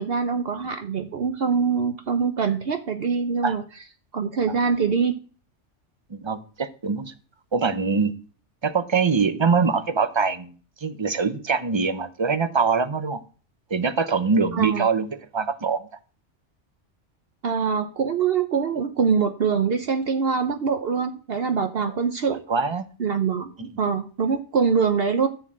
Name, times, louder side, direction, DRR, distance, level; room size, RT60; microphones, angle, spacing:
voice 1, 0.0-3.6 4.1-5.1 14.5-14.9 17.4-22.4 23.0-25.3, right 6 dB, 60° right, 7 dB, 0.9 m, -24 dB
voice 2, 6.1-7.1 7.5-8.1 8.6-10.6 10.8-13.2 13.7-15.1 15.3-15.8 22.3-22.9 23.6-23.7, right 5 dB, 30° right, 10 dB, 0.7 m, -23 dB
13.5 x 4.6 x 7.4 m, 0.39 s
omnidirectional pair, 1.2 m